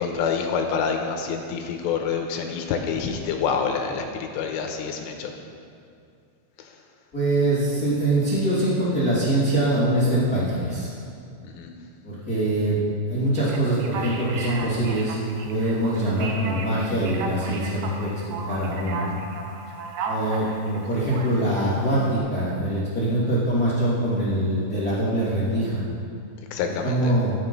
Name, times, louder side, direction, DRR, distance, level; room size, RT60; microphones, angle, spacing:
voice 1, 0.0-4.1 4.3-5.3 11.6-11.7 26.5-27.1, left 6 dB, 85° left, 3 dB, 3.5 m, -27 dB
voice 2, 7.1-10.9 12.0-12.8 13.1-15.1 15.4-19.1 20.1-25.8 26.6-27.3, right 1 dB, 25° left, -10 dB, 2.6 m, -23 dB
Male speech man speaking, 13.4-22.2, right 3 dB, 70° right, 2.8 m, -35 dB
14.0 x 11.0 x 5.5 m, 2.4 s
omnidirectional pair, 5.7 m